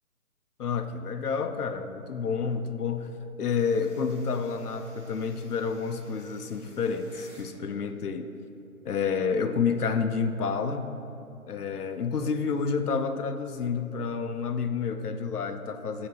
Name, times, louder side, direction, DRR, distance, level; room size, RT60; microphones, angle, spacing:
voice 1, 0.6-3.1 3.4-8.3 8.8-10.9 11.5-16.1, left 5 dB, 85° left, 8 dB, 0.6 m, -29 dB
sound 1, 3.5-7.5, left 1 dB, 10° left, 0.9 m, -56 dB
8.3 x 2.8 x 4.2 m, 2.8 s
figure-of-eight pair, 150°, 45 cm